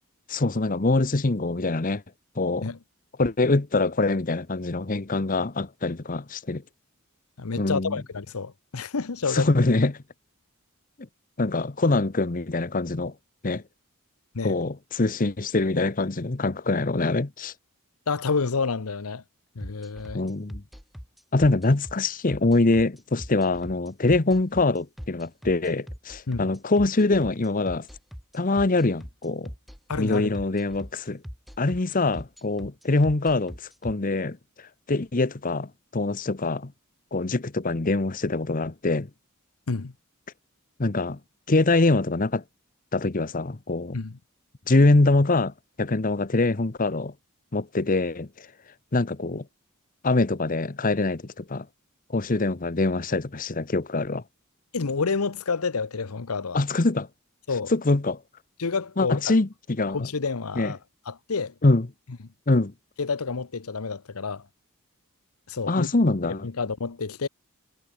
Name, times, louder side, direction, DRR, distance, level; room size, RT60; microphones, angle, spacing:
voice 1, 0.3-2.0 2.4-2.7 3.2-6.6 7.6-8.0 9.3-10.0 11.4-13.1 13.4-13.6 14.4-17.5 20.1-20.6 21.3-27.9 28.3-29.5 30.0-31.2 31.6-36.7 37.1-39.1 40.8-41.2 41.5-42.4 42.9-44.0 44.7-47.1 47.5-48.5 48.9-49.4 50.0-51.7 52.1-54.2 56.5-57.1 57.7-58.2 59.0-60.1 60.6-60.7 61.6-61.9 62.5-62.7 65.7-66.5, left 2 dB, 40° left, 0.9 m, -24 dB
voice 2, 7.4-9.5 14.3-14.6 18.1-19.2 19.6-20.2 26.3-26.5 29.9-30.3 39.7-39.9 43.9-44.2 54.7-56.6 57.5-57.7 58.6-59.3 59.9-60.8 61.1-61.5 63.0-64.4 65.5-65.9 66.4-67.3, left 4 dB, 90° left, 0.9 m, -29 dB
sound 1, 19.6-33.9, equal, ahead, 4.3 m, -40 dB
head